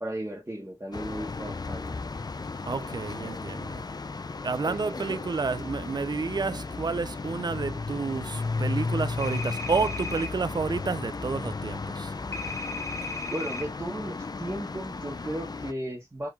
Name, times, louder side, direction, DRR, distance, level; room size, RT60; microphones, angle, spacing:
voice 1, 0.0-1.9 4.6-5.1 13.3-16.3, right 1 dB, 35° right, 1.5 m, -35 dB
sound 1, 0.9-15.7, left 3 dB, 70° left, 0.5 m, -34 dB
voice 2, 2.6-3.8 4.4-12.1 13.0-13.1, right 4 dB, 75° right, 0.4 m, -30 dB
sound 2, 9.2-10.3 12.3-13.6, left 3 dB, 40° left, 1.0 m, -36 dB
4.7 x 3.8 x 2.5 m
wide cardioid pair, 60°, 7 cm